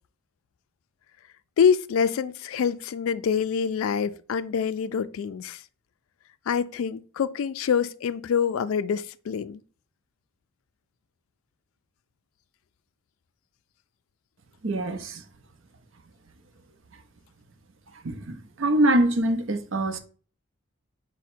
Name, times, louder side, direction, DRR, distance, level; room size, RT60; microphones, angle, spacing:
voice 1, 1.6-5.6 6.5-9.6, left 7 dB, 80° left, 0.3 m, -25 dB
voice 2, 14.6-15.2 17.9-20.0, right 1 dB, 65° right, 0.6 m, -24 dB
4.9 x 2.1 x 4.3 m
head